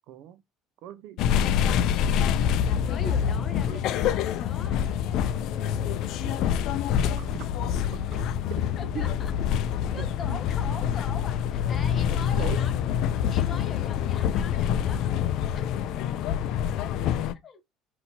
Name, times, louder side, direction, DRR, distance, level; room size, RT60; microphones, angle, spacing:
voice 1, 0.1-0.4 0.8-1.2 1.7-1.9 3.0-3.9 6.2-6.7 7.2-7.5 7.9-8.2 8.6-9.1 10.0-10.4 10.7-10.8 12.2-12.7, right 10 dB, 70° right, 0.4 m, -41 dB
sound 1, 1.2-17.3, left 9 dB, 65° left, 0.4 m, -26 dB
voice 2, 2.8-4.9 8.8-9.3 9.9-12.8 13.3-15.7 17.4-17.6, left 5 dB, 35° left, 0.9 m, -41 dB
5.6 x 2.8 x 2.8 m
cardioid pair, 120°, 0 cm